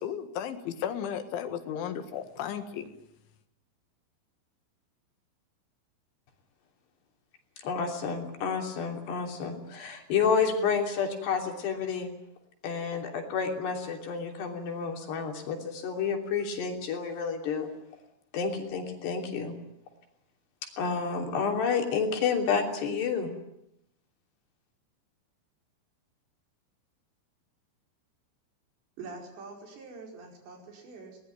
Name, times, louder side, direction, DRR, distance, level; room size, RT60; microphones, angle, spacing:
voice 1, 0.0-2.9, left 9 dB, 85° left, 9 dB, 4.2 m, -34 dB
voice 2, 7.6-12.1 12.6-17.7 18.3-19.5 20.8-23.3, left 6 dB, 65° left, 3 dB, 5.1 m, -30 dB
voice 3, 29.0-31.2, right 3 dB, 70° right, 2 dB, 7.2 m, -45 dB
21.5 x 19.5 x 9.4 m, 0.81 s
omnidirectional pair, 5.3 m